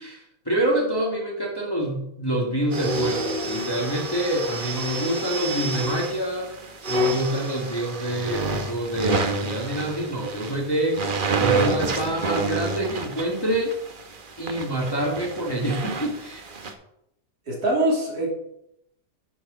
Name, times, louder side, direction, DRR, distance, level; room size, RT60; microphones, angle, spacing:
voice 1, 0.0-6.6 6.9-11.1 11.4-13.7 14.4-16.5, right 1 dB, 15° left, -2 dB, 1.6 m, -26 dB
sound 1, 2.7-16.7, right 2 dB, 40° right, 0.9 m, -29 dB
voice 2, 17.5-18.3, right 1 dB, 70° right, -3 dB, 3.4 m, -23 dB
9.8 x 4.6 x 6.2 m, 0.78 s
omnidirectional pair, 1.7 m